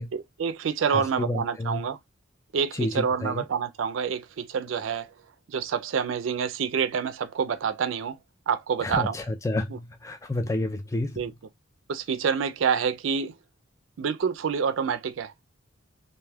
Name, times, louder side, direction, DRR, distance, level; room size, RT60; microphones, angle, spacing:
voice 1, 0.1-2.0 2.5-5.1 5.5-8.2 8.5-9.1 11.2-11.3 11.9-13.3 14.0-15.4, right 6 dB, 75° right, 0.4 m, -27 dB
voice 2, 0.9-1.9 2.7-3.5 8.8-11.3, left 2 dB, 15° left, 0.3 m, -30 dB
2.6 x 2.2 x 3.3 m
head